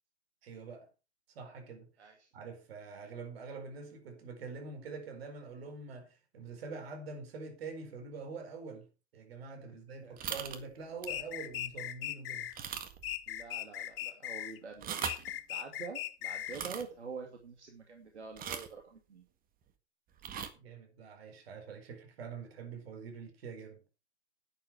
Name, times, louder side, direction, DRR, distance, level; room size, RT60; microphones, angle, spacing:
voice 1, 0.4-0.9 1.3-1.9 2.3-8.9 9.1-12.5 20.5-23.8, right 4 dB, 65° right, 4.6 m, -45 dB
voice 2, 2.0-2.3 10.0-10.2 13.3-19.2, right 5 dB, 85° right, 2.5 m, -46 dB
sound 1, 10.2-10.6 11.0-11.2 11.7-11.8 12.5-13.1 13.4-13.5 14.7-15.3 16.5-16.8 18.4-18.8 20.2-20.5, right 8 dB, 25° right, 1.8 m, -39 dB
sound 2, 11.1-12.5 13.0-14.6 15.0-16.6, left 12 dB, 60° left, 1.4 m, -39 dB
10.5 x 10.5 x 4.6 m
figure-of-eight pair, 105°, 33 cm